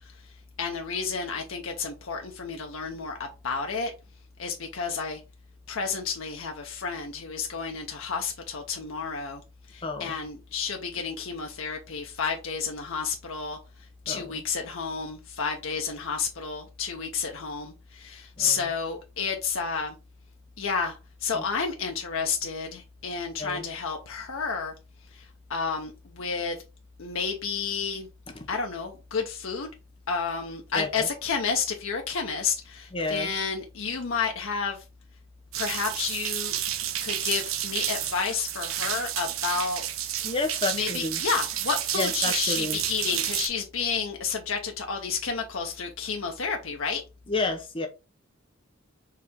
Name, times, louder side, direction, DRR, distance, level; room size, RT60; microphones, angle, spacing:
voice 1, 0.6-3.9 4.4-5.2 5.7-9.4 9.7-13.6 14.1-19.9 20.6-24.7 25.1-26.6 27.0-28.1 28.5-29.7 30.1-34.8 35.6-36.5 37.0-39.8 40.7-47.0, left 5 dB, 70° left, 0.7 m, -31 dB
voice 2, 9.8-10.2 14.1-14.4 18.4-18.6 21.3-21.4 23.4-23.7 28.3-28.5 30.7-31.1 32.9-33.3 40.2-41.2 41.9-42.8 47.3-47.9, left 3 dB, 25° left, 0.8 m, -30 dB
sound 1, 35.5-43.5, right 11 dB, 70° right, 0.6 m, -30 dB
4.8 x 2.8 x 3.5 m
head